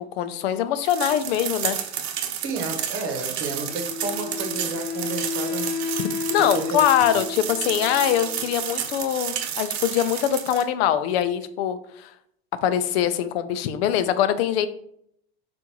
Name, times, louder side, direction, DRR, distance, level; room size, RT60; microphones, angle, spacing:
voice 1, 0.1-1.8 6.3-12.1 12.6-14.7, left 10 dB, 70° left, 12 dB, 0.6 m, -23 dB
sound 1, 0.9-10.6, right 9 dB, 80° right, 0.7 m, -31 dB
voice 2, 2.4-5.7 6.3-6.8, right 3 dB, 40° right, 4 dB, 1.1 m, -31 dB
Wind instrument woodwind instrument, 3.7-8.7, left 6 dB, 35° left, 0.9 m, -32 dB
6.9 x 2.6 x 3.0 m, 0.70 s
supercardioid pair, 120°, 32 cm